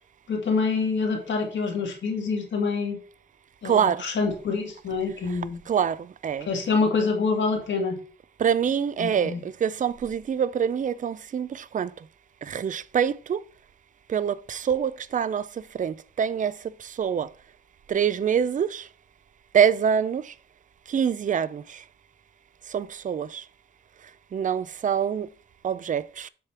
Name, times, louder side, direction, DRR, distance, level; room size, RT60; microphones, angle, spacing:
voice 1, 0.3-3.0 3.6-5.6 6.5-8.0 9.0-9.4, left 4 dB, 85° left, 2.0 m, -26 dB
voice 2, 3.6-4.0 5.7-6.0 6.2-6.5 8.4-11.9 12.5-13.4 14.1-15.4 15.8-16.5 17.0-17.3 17.9-18.8 19.5-20.2 20.9-21.6 22.7-23.4 24.3-25.3 25.6-26.3, right 8 dB, 45° right, 0.4 m, -25 dB
7.6 x 3.3 x 6.0 m
wide cardioid pair, 120°, 19 cm